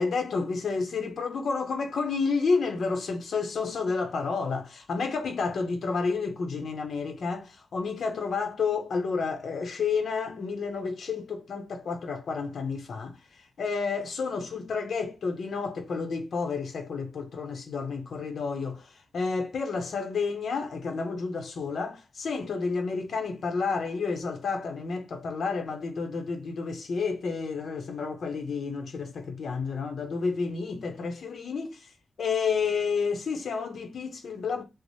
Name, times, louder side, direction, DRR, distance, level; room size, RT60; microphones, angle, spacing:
voice 1, 0.0-31.9 32.2-34.6, left 4 dB, 70° left, 0.7 m, -30 dB
3.1 x 2.0 x 4.0 m
wide cardioid pair, 155°, 0 cm